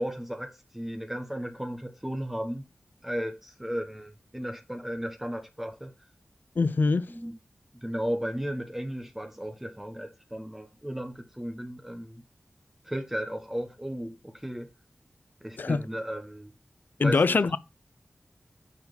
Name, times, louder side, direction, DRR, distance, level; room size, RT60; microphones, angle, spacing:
voice 1, 0.0-2.7 3.0-5.9 7.1-7.4 7.7-12.2 12.8-14.7 15.4-16.5 17.0-17.4, equal, 10° right, 1.3 m, -35 dB
voice 2, 6.6-7.1 15.6-15.8 17.0-17.6, left 4 dB, 70° left, 0.6 m, -23 dB
9.6 x 4.8 x 5.3 m
wide cardioid pair, 70°, 3 cm